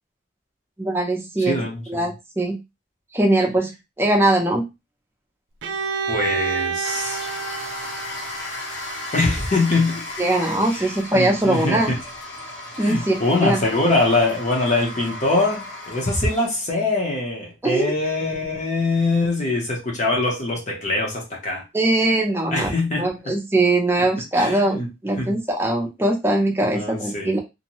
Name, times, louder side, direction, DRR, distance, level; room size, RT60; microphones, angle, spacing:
voice 1, 0.8-2.6 3.1-3.7 4.0-4.6 10.2-11.9 12.8-13.6 17.6-17.9 21.7-27.4, right 2 dB, 10° right, 0.6 m, -21 dB
voice 2, 1.4-2.1 6.1-7.3 9.1-10.1 10.7-12.0 12.8-21.6 22.5-23.3 24.4-24.9 25.2-25.3 26.7-27.4, left 2 dB, 35° left, 0.8 m, -23 dB
Bowed string instrument, 5.6-9.4, right 6 dB, 70° right, 0.4 m, -29 dB
sound 1, 6.8-16.5, left 2 dB, 65° left, 1.0 m, -35 dB
2.6 x 2.1 x 2.9 m
head